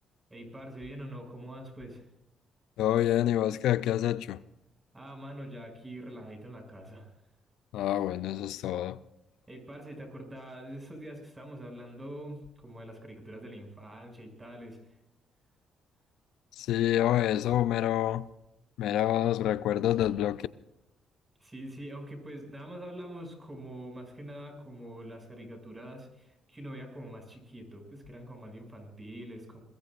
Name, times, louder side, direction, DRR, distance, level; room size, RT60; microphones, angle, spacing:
voice 1, 0.3-2.1 4.9-7.1 9.5-14.9 21.4-29.6, right 1 dB, 20° right, 7.0 m, -44 dB
voice 2, 2.8-4.4 7.7-9.0 16.6-18.3 18.8-20.5, left 12 dB, 85° left, 0.5 m, -27 dB
26.5 x 21.0 x 2.5 m
cardioid pair, 90°, 0 cm